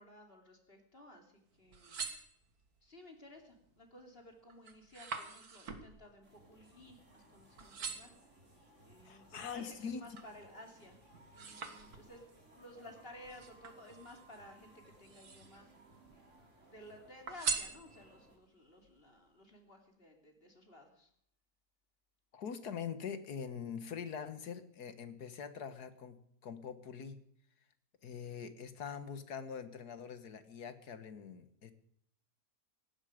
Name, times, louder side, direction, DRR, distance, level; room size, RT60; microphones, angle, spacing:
voice 1, 0.0-2.1 2.8-8.1 8.8-11.0 11.3-12.3 12.5-14.7 15.0-15.7 16.6-21.1, left 1 dB, 35° left, 3 dB, 3.1 m, -55 dB
sound 1, 1.6-2.9 3.4-3.8 4.2-7.3 7.6-8.3 8.9-10.4 10.8-12.4 13.2-14.4 14.9-15.7 16.1-16.8 17.3-18.3 18.8-18.9, right 5 dB, 70° right, 2.2 m, -43 dB
sound 2, 6.2-18.4, right 1 dB, 50° right, 3.9 m, -62 dB
voice 2, 9.1-10.0 22.3-27.2 28.0-31.7, left 7 dB, 80° left, 11 dB, 1.9 m, -43 dB
18.5 x 15.0 x 5.1 m, 0.67 s
omnidirectional pair, 1.7 m